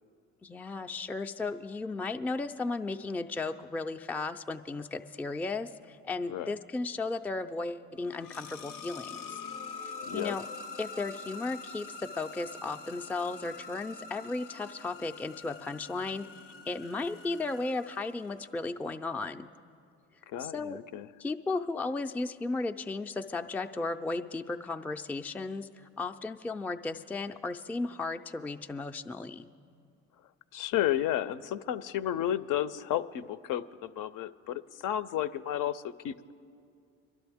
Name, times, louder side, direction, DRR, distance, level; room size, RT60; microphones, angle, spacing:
voice 1, 0.4-9.4 9.8-10.4 10.8-16.3 16.7-19.5 20.4-20.8 21.2-29.5, left 3 dB, 5° left, 7 dB, 0.4 m, -35 dB
sound 1, 7.9-18.7, left 4 dB, 90° left, 0.8 m, -45 dB
voice 2, 10.0-10.4 20.3-21.1 30.5-36.3, left 12 dB, 60° left, 14 dB, 0.6 m, -32 dB
23.5 x 12.0 x 3.5 m, 2.4 s
supercardioid pair, 70°, 35 cm